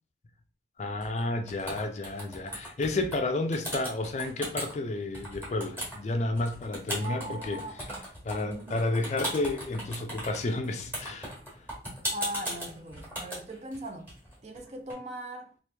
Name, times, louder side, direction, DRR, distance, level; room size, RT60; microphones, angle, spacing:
voice 1, 0.8-7.6 8.2-11.3, left 2 dB, 40° left, 0.4 m, -31 dB
sound 1, 1.0-1.2 1.5-3.2 3.5-4.7 5.1-14.9, equal, 10° right, 1.3 m, -37 dB
voice 2, 7.0-8.0 8.4-8.9 12.1-14.1 14.4-15.5, right 1 dB, 35° right, 0.5 m, -40 dB
3.0 x 2.5 x 3.3 m
head